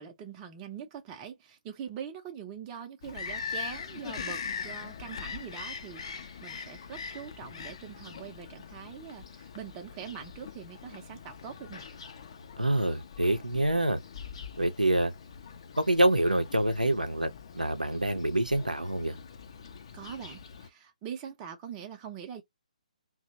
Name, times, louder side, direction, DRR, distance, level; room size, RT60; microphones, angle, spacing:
voice 1, 0.0-11.9 19.9-22.4, right 8 dB, 20° right, 0.5 m, -43 dB
Bird vocalization bird call bird song, 3.0-20.7, left 6 dB, 40° left, 0.4 m, -42 dB
voice 2, 12.6-14.0 14.6-15.1 15.8-19.2, right 1 dB, 85° right, 0.5 m, -26 dB
2.7 x 2.0 x 2.7 m
figure-of-eight pair, 135°, 4 cm